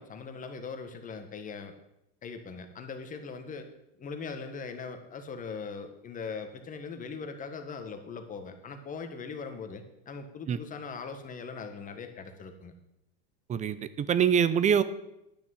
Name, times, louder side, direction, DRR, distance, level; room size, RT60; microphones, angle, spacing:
voice 1, 0.0-1.7 2.2-3.7 4.0-12.7, left 5 dB, 25° left, 7 dB, 1.5 m, -40 dB
voice 2, 13.5-14.8, right 8 dB, 20° right, 14 dB, 0.6 m, -24 dB
10.5 x 6.2 x 7.7 m, 0.85 s
supercardioid pair, 130°, 32 cm